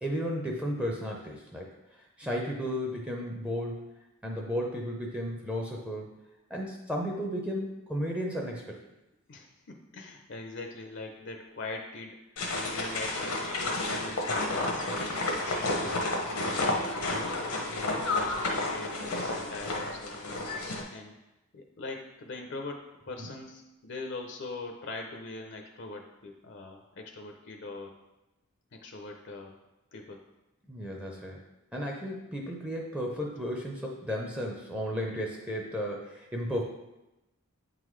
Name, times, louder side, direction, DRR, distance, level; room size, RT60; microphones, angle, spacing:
voice 1, 0.0-1.7 2.2-3.9 4.2-6.2 6.5-8.8 23.2-23.3 30.7-31.4 31.7-36.6, equal, 5° right, -1 dB, 0.6 m, -34 dB
voice 2, 9.3-12.2 12.5-17.0 17.5-21.2 21.5-27.9 28.7-29.5 29.9-30.2, left 3 dB, 55° left, 3 dB, 0.6 m, -42 dB
sound 1, 12.4-20.8, left 2 dB, 90° left, 1.1 m, -31 dB
8.3 x 3.8 x 3.1 m, 0.98 s
head